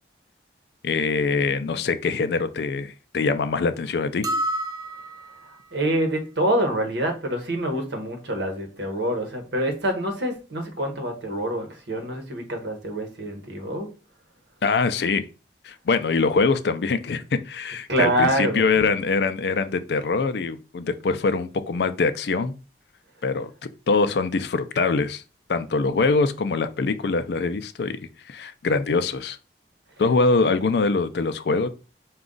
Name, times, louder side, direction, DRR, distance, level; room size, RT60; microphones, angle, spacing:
voice 1, 0.8-4.3 14.6-15.2 15.6-22.5 23.2-23.5 23.9-25.2 25.5-28.0 28.3-29.4 30.0-31.7, left 4 dB, 70° left, 0.4 m, -23 dB
sound 1, 4.2-5.6, right 1 dB, 20° right, 0.3 m, -29 dB
voice 2, 5.7-13.9 17.9-18.8, right 1 dB, 80° right, 1.1 m, -26 dB
5.0 x 2.3 x 3.8 m
head